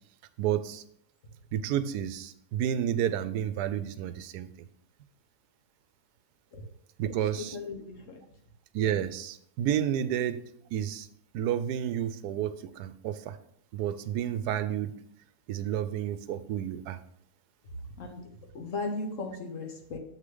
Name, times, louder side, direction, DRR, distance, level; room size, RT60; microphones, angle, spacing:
voice 1, 0.4-0.8 1.5-4.5 7.0-7.5 8.7-10.4 10.7-11.1 11.3-13.4 13.7-14.9 15.5-17.0, right 10 dB, 85° right, 13 dB, 1.1 m, -30 dB
voice 2, 7.3-8.2 18.0-18.2 18.5-20.0, left 3 dB, 55° left, 3 dB, 1.5 m, -36 dB
7.3 x 6.5 x 3.8 m, 0.68 s
omnidirectional pair, 1.7 m